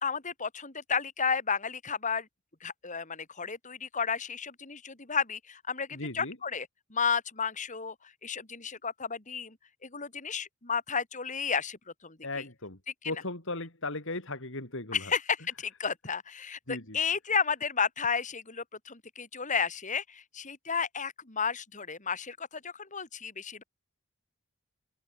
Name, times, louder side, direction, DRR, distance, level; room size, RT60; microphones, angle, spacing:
voice 1, 0.0-2.3 2.6-7.9 8.2-9.6 9.8-11.8 12.0-12.2 14.9-23.6, left 6 dB, 35° left, 2.9 m, -32 dB
voice 2, 5.9-6.4 12.2-12.8 13.1-15.1 16.7-17.0, left 2 dB, 60° left, 5.5 m, -37 dB
open air
head